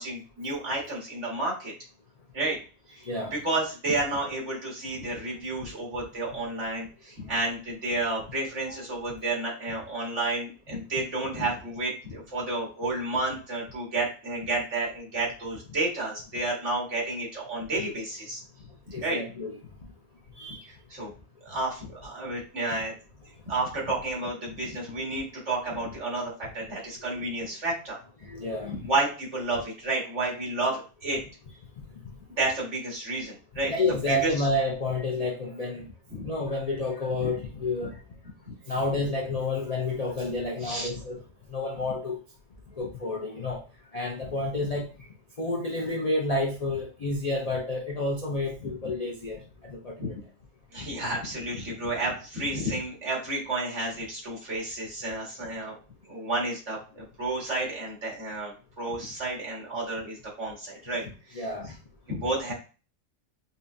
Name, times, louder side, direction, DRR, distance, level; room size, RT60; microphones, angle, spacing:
voice 1, 0.0-1.7 2.3-2.6 2.9-3.0 3.3-18.4 19.0-19.2 20.9-21.1 21.5-22.9 23.5-28.0 28.7-31.2 32.4-33.7 34.1-34.3 36.1-36.3 37.2-37.3 38.5-38.6 40.6-40.9 48.6-48.7 50.0-50.1 50.7-55.8 56.0-61.5 62.1-62.5, right 2 dB, 50° right, -3 dB, 2.0 m, -31 dB
voice 2, 3.0-3.3 5.6-5.7 8.7-8.8 18.9-19.6 20.4-20.6 27.1-27.3 28.2-28.8 33.7-35.9 36.2-38.0 38.7-41.2 41.5-42.2 42.8-43.6 43.9-44.9 45.4-50.2 61.3-61.7, left 2 dB, 85° left, -2 dB, 0.3 m, -30 dB
5.3 x 2.3 x 2.6 m, 0.34 s
omnidirectional pair, 1.6 m